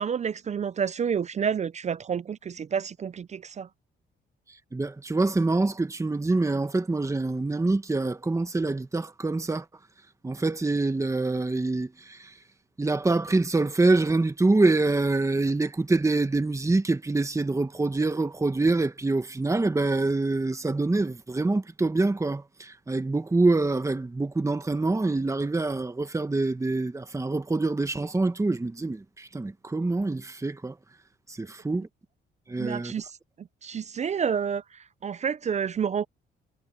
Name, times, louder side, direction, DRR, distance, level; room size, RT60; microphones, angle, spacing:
voice 1, 0.0-3.7 32.6-33.1 33.4-36.1, right 7 dB, 35° right, 0.5 m, -29 dB
voice 2, 4.5-9.7 10.2-12.3 12.8-30.8 31.3-31.9 32.5-32.9, right 2 dB, 15° right, 1.4 m, -25 dB
cardioid pair, 90°, 20 cm